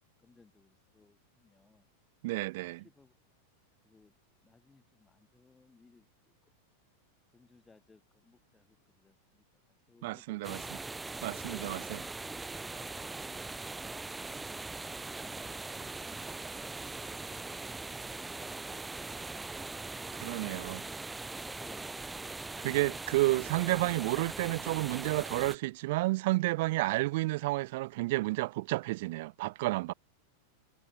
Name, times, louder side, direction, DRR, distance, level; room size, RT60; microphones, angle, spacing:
voice 1, 0.0-1.9 2.6-3.1 3.8-4.1 4.4-6.3 7.3-9.4 9.9-10.8 11.3-13.2 15.1-16.2 18.5-19.9 20.4-21.8, left 4 dB, 10° left, 5.3 m, -62 dB
voice 2, 2.2-2.8 10.0-10.6 11.2-12.0 20.2-20.8 22.6-29.9, right 20 dB, 50° right, 0.3 m, -31 dB
sound 1, 10.4-25.5, right 3 dB, 10° right, 1.3 m, -41 dB
figure-of-eight pair, 90°, 0 cm